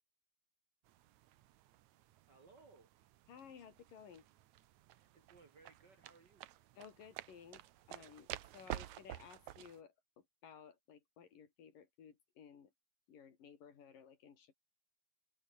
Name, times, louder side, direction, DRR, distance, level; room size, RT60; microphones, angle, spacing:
sound 1, 0.8-9.8, right 14 dB, 70° right, 2.2 m, -51 dB
voice 1, 2.3-2.9 4.9-6.4, right 4 dB, 40° right, 1.8 m, -63 dB
voice 2, 3.3-4.3 6.8-12.7 13.1-14.5, left 7 dB, 85° left, 4.8 m, -57 dB
omnidirectional pair, 3.8 m